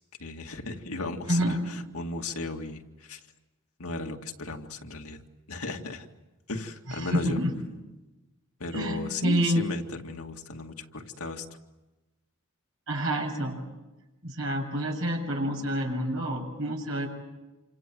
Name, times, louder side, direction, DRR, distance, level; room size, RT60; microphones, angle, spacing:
voice 1, 0.2-3.2 3.8-5.2 5.5-6.1 6.5-7.4 8.6-11.4, left 3 dB, 85° left, 3 dB, 2.2 m, -35 dB
voice 2, 6.9-7.5 8.7-9.6 12.9-13.6 14.2-17.1, right 1 dB, 65° right, 2 dB, 7.2 m, -28 dB
28.5 x 26.5 x 7.8 m, 1.1 s
head